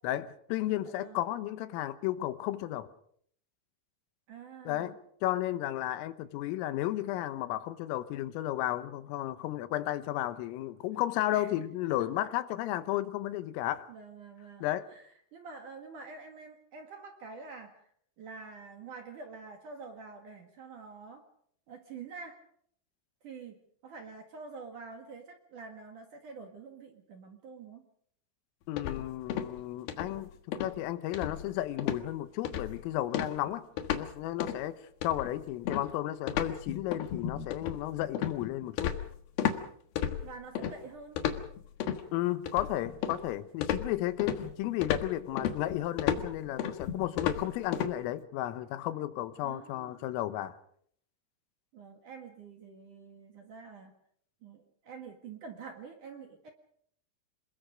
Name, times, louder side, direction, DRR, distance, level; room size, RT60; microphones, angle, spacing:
voice 1, 0.0-2.9 4.7-4.9 5.2-13.9 14.6-14.9 28.7-33.6 33.9-39.0 42.1-50.6, left 14 dB, 85° left, 12 dB, 3.7 m, -33 dB
voice 2, 0.8-1.2 4.3-5.0 11.3-11.5 11.9-12.1 13.9-14.6 14.9-17.9 18.2-21.3 21.7-22.4 23.2-27.9 40.2-41.2 49.4-50.0 51.7-54.0 54.4-56.5, right 4 dB, 55° right, 4 dB, 2.5 m, -47 dB
sound 1, 28.8-29.6 29.9-30.2 30.5-30.8 31.1-31.5 31.8-32.0 32.4-32.8 33.1-34.1 34.4-34.6 35.0-39.6 40.0-40.7 41.2-42.0 42.5-43.3 43.6-47.9, left 9 dB, 65° left, 2.7 m, -33 dB
27.5 x 21.5 x 5.1 m, 0.65 s
omnidirectional pair, 5.9 m